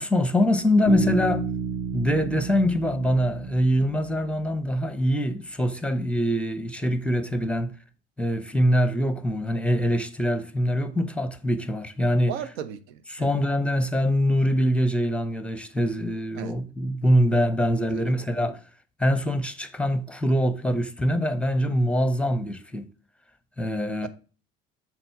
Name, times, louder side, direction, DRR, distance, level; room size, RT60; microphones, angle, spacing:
voice 1, 0.0-1.5 1.9-7.7 8.2-12.3 13.1-18.6 19.0-22.9 23.6-24.1, equal, 5° left, 0.8 m, -24 dB
Bass guitar, 0.9-4.5, right 5 dB, 50° right, 3.1 m, -31 dB
voice 2, 12.2-13.3 16.4-16.5 17.9-18.5 24.0-24.1, right 9 dB, 70° right, 0.8 m, -37 dB
6.7 x 4.0 x 4.5 m
figure-of-eight pair, 60°, 33 cm